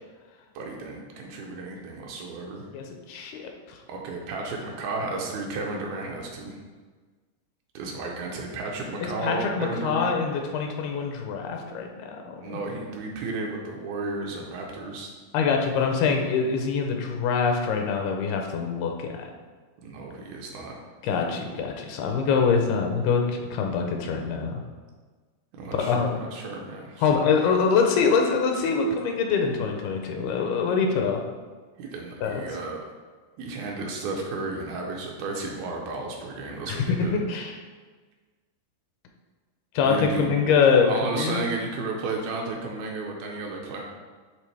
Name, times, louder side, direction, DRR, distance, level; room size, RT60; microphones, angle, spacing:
voice 1, 0.6-2.6 3.9-6.6 7.7-10.1 12.4-15.1 19.8-20.8 25.6-27.6 31.8-32.8 33.4-37.2 39.8-40.3 40.8-43.8, right 3 dB, 80° right, 0 dB, 2.5 m, -33 dB
voice 2, 2.7-3.8 9.0-12.6 15.3-19.3 21.0-24.6 25.8-26.2 27.0-31.2 32.2-32.4 36.7-37.6 39.8-40.9 41.2-41.4, left 5 dB, 80° left, 2 dB, 2.5 m, -24 dB
11.0 x 3.6 x 3.3 m, 1.4 s
omnidirectional pair, 4.7 m